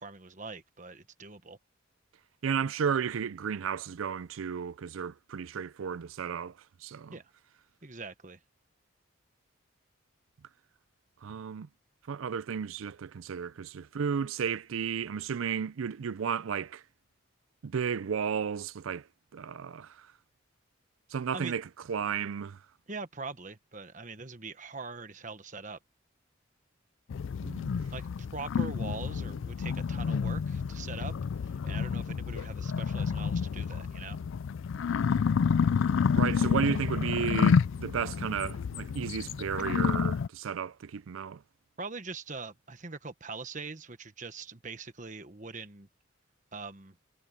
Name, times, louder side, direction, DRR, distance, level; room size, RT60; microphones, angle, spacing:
voice 1, 0.0-1.6 7.1-7.2 7.8-8.4 21.3-21.6 22.9-25.8 27.9-31.1 31.4-34.2 41.8-45.9 46.5-47.0, right 4 dB, 40° right, 1.3 m, -42 dB
voice 2, 2.4-6.5 6.8-7.1 11.2-11.7 12.1-16.8 17.6-19.1 19.3-20.1 21.1-22.6 27.4-27.8 36.2-41.4, right 7 dB, 80° right, 0.4 m, -33 dB
sound 1, 27.1-40.3, left 6 dB, 70° left, 0.4 m, -29 dB
head